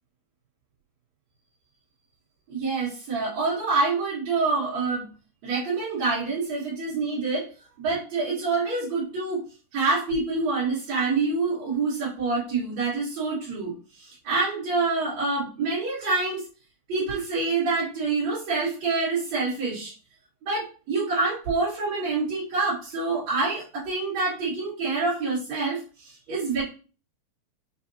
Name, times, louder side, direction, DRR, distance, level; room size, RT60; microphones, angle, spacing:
voice 1, 2.5-5.0 5.4-7.5 7.8-9.4 9.7-16.4 16.9-19.9 20.4-26.6, right 3 dB, 55° right, -11 dB, 2.9 m, -26 dB
6.7 x 2.7 x 2.7 m, 0.37 s
omnidirectional pair, 4.2 m